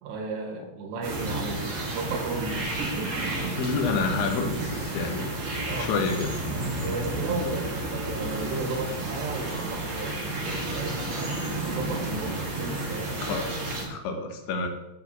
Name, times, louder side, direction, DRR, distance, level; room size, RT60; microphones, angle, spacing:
voice 1, 0.0-3.7 5.6-5.9 6.7-13.2, right 3 dB, 70° right, 2 dB, 3.9 m, -34 dB
sound 1, 1.0-13.8, right 2 dB, 45° right, 3.8 m, -31 dB
voice 2, 3.6-5.3 5.8-6.3 13.2-13.6 13.8-14.7, left 4 dB, 80° left, 5 dB, 3.7 m, -28 dB
9.5 x 6.1 x 8.0 m, 0.95 s
omnidirectional pair, 5.2 m